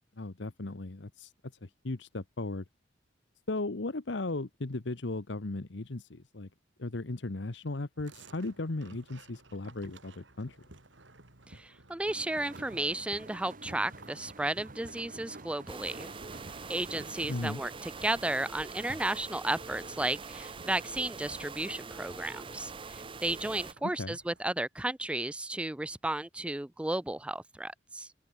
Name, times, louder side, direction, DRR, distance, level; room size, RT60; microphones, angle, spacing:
voice 1, 0.2-1.3 1.6-2.6 3.5-6.5 6.8-10.6 17.3-17.6 23.8-24.2, left 2 dB, 75° left, 1.1 m, -36 dB
sound 1, 8.0-24.4, right 2 dB, 85° right, 4.4 m, -56 dB
voice 2, 11.5-16.1 16.7-28.1, right 1 dB, 5° right, 0.3 m, -34 dB
sound 2, 12.1-17.3, right 2 dB, 45° right, 1.7 m, -49 dB
sound 3, 15.7-23.7, right 4 dB, 30° right, 0.8 m, -44 dB
open air
head